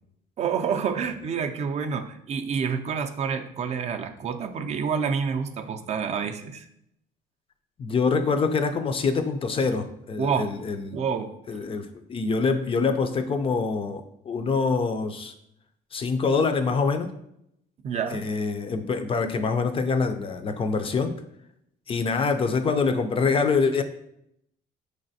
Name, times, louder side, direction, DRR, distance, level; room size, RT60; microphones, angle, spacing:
voice 1, 0.4-6.7 10.2-10.6 10.9-11.3 17.8-18.2, right 6 dB, 40° right, 6 dB, 0.4 m, -28 dB
voice 2, 7.8-11.0 11.5-15.3 15.9-17.1 18.1-21.1 21.9-23.8, left 4 dB, 35° left, 8 dB, 0.4 m, -25 dB
4.7 x 3.3 x 2.6 m, 0.76 s
cardioid pair, 110°, 17 cm